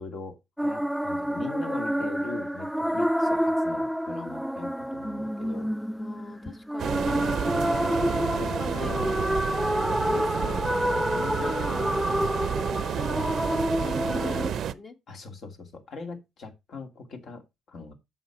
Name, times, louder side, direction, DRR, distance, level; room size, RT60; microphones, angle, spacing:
voice 1, 0.0-5.7 7.9-9.1 10.1-13.0 14.1-14.5 15.1-17.9, left 3 dB, 65° left, 2.3 m, -41 dB
sound 1, 0.6-14.5, equal, ahead, 0.4 m, -28 dB
voice 2, 6.0-7.9 8.6-9.2 11.4-12.0 13.0-13.4 13.8-15.0, left 3 dB, 45° left, 1.7 m, -41 dB
sound 2, 6.8-14.7, right 9 dB, 70° right, 0.6 m, -31 dB
7.8 x 6.2 x 4.7 m
hypercardioid pair, 50°, 0 cm